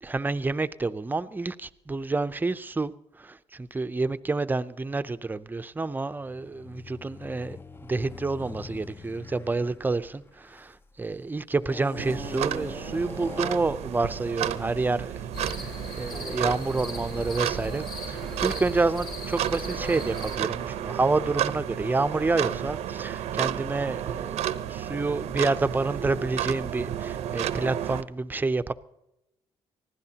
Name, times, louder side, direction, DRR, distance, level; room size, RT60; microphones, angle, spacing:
voice 1, 0.0-2.9 3.2-7.6 7.9-15.7 16.0-24.4 24.7-28.7, right 3 dB, 15° right, 0.6 m, -28 dB
sound 1, 6.2-11.0 11.6-13.8, left 3 dB, 20° left, 0.6 m, -42 dB
sound 2, 12.0-28.0, right 11 dB, 85° right, 0.7 m, -32 dB
sound 3, 15.3-20.4, left 3 dB, 45° left, 3.3 m, -39 dB
24.5 x 15.5 x 2.9 m
cardioid pair, 100°, 11 cm